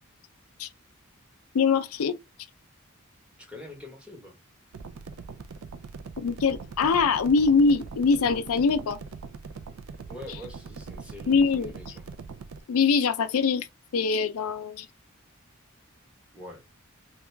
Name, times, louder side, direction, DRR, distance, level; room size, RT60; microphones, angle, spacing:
voice 1, 1.5-2.2 6.2-9.0 11.3-11.7 12.7-13.7 13.9-14.9, left 5 dB, 85° left, 0.4 m, -23 dB
voice 2, 3.4-4.4 10.1-12.1 16.3-16.6, left 1 dB, 5° right, 1.0 m, -44 dB
sound 1, 4.7-12.6, right 4 dB, 70° right, 0.4 m, -42 dB
2.9 x 2.4 x 3.2 m
head